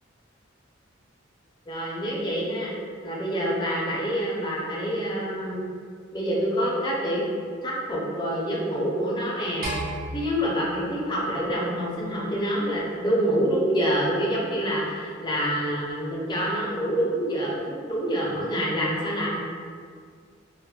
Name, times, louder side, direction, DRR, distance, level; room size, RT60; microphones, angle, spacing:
voice 1, 1.7-2.7 3.0-5.7 6.1-7.3 7.6-19.4, equal, 25° left, -4 dB, 0.5 m, -27 dB
sound 1, 9.6-12.0, right 1 dB, 50° right, 0.6 m, -35 dB
2.3 x 2.1 x 3.5 m, 2.1 s
head